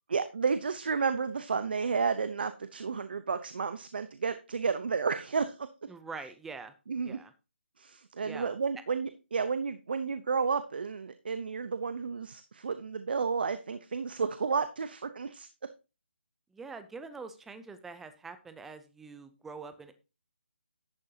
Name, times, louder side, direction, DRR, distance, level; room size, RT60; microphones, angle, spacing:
voice 1, 0.1-5.7 6.9-7.2 7.8-15.5, right 5 dB, 55° right, 11 dB, 0.8 m, -31 dB
voice 2, 5.9-6.7 7.0-7.3 8.2-8.5 16.5-19.9, right 4 dB, 5° right, 11 dB, 0.5 m, -44 dB
10.5 x 8.7 x 2.8 m, 0.30 s
hypercardioid pair, 170°, 6 cm